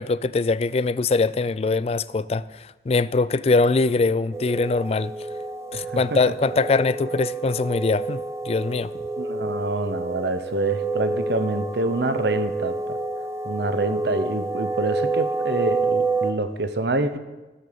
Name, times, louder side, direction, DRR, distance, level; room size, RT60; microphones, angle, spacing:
voice 1, 0.0-5.1 5.7-8.9, left 3 dB, 35° left, 0.3 m, -22 dB
Glass Build Up, 4.3-16.3, right 3 dB, 15° right, 0.7 m, -28 dB
voice 2, 5.7-6.2 9.2-13.0 13.4-17.2, right 2 dB, 70° right, 0.9 m, -26 dB
16.0 x 6.6 x 6.8 m
head